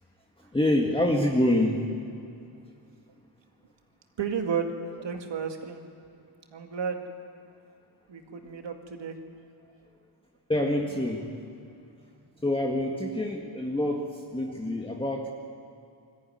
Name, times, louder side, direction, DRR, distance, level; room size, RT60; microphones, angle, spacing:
voice 1, 0.4-1.9 10.5-11.3 12.4-15.3, left 1 dB, 10° left, -1 dB, 1.8 m, -26 dB
voice 2, 4.2-5.8 6.5-7.0 8.1-9.2, right 6 dB, 70° right, 4 dB, 2.1 m, -32 dB
21.5 x 14.0 x 9.7 m, 2.5 s
cardioid pair, 90°, 45 cm